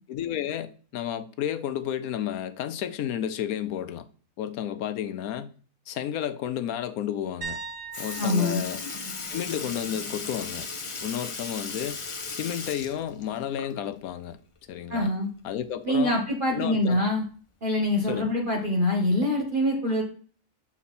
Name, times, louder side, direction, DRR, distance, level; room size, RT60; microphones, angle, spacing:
voice 1, 0.1-4.0 4.4-5.5 5.9-7.6 8.0-8.8 9.3-10.7 11.0-12.0 12.3-14.4 14.7-15.1 15.4-16.2 16.5-17.0 18.1-18.3, left 10 dB, 90° left, 1.1 m, -31 dB
sound 1, 7.4-11.2 11.5-11.8 14.7-14.8, right 4 dB, 60° right, 1.6 m, -42 dB
Sink (filling or washing) / Liquid, 7.5-7.6 7.9-14.0 14.4-14.5 16.0-16.1 17.1-17.2 18.0-18.2 19.0-19.1, left 4 dB, 35° left, 0.6 m, -37 dB
voice 2, 8.2-8.6 14.9-15.3 15.8-17.2 17.6-20.0, left 1 dB, 40° right, 1.4 m, -24 dB
7.2 x 4.2 x 4.2 m
omnidirectional pair, 1.5 m